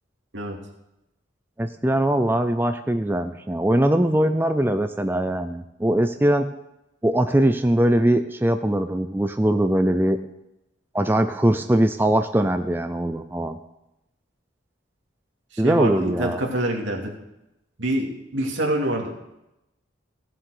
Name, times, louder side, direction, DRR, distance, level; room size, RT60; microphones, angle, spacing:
voice 1, 1.6-6.5 7.0-10.2 10.9-13.6 15.6-16.4, right 1 dB, 10° right, 8 dB, 0.4 m, -21 dB
voice 2, 15.5-17.1 17.8-19.1, right 1 dB, 75° right, 0 dB, 2.5 m, -26 dB
16.0 x 7.6 x 6.6 m, 0.91 s
head